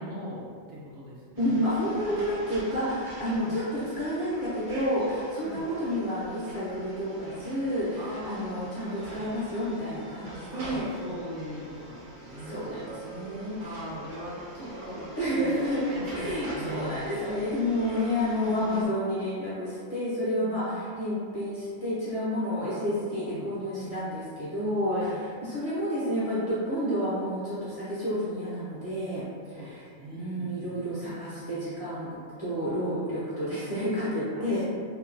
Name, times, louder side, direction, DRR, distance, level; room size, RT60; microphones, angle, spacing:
voice 1, 0.0-1.6 2.0-2.3 3.3-3.5 5.4-5.6 8.0-9.4 9.9-10.0 10.5-12.6 13.6-15.5 15.9-16.9 18.3-18.9 20.4-20.8 22.7-24.2 24.9-25.2 29.5-29.7 30.0-30.8 34.4-34.7, equal, 70° right, -7 dB, 1.0 m, -41 dB
voice 2, 1.4-10.9 12.4-13.8 15.2-15.8 16.1-25.1 25.4-29.2 29.5-29.8 30.1-34.7, equal, 35° left, -12 dB, 0.6 m, -30 dB
sound 1, 1.4-18.8, right 1 dB, 55° right, 0.6 m, -44 dB
2.9 x 2.2 x 2.5 m, 2.1 s
omnidirectional pair, 1.3 m